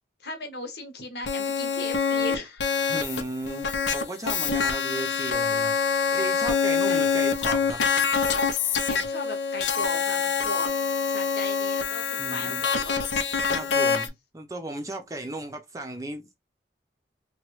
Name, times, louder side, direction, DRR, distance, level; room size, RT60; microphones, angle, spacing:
voice 1, 0.2-2.8 4.4-4.5 6.9-7.1 8.9-10.7 11.0-13.1 13.5-13.8, left 2 dB, 65° left, 1.0 m, -37 dB
sound 1, 1.3-14.1, left 5 dB, 85° left, 0.6 m, -25 dB
voice 2, 2.9-5.7 6.1-7.8 12.2-12.7 13.5-16.4, right 2 dB, 20° right, 0.5 m, -35 dB
2.9 x 2.2 x 3.1 m
head